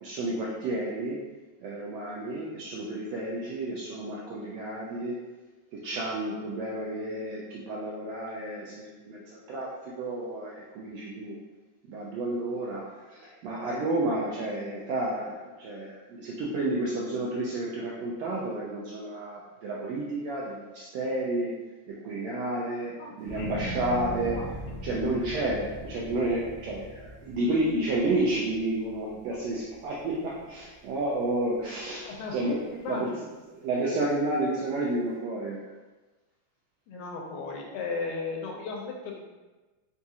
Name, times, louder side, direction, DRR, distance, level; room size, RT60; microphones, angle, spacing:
voice 1, 0.0-1.2 1.6-5.2 5.7-11.4 11.9-21.5 21.9-24.4 24.8-32.6 32.9-33.1 33.5-35.6, right 2 dB, 80° right, -5 dB, 1.5 m, -31 dB
voice 2, 23.0-23.5 24.3-24.5 32.0-32.3 32.7-33.2 36.9-39.2, left 4 dB, 85° left, 0 dB, 2.0 m, -36 dB
sound 1, 23.2-29.6 30.0-30.6, right 1 dB, 50° right, 1.0 m, -40 dB
5.0 x 2.7 x 2.3 m, 1.2 s
omnidirectional pair, 3.5 m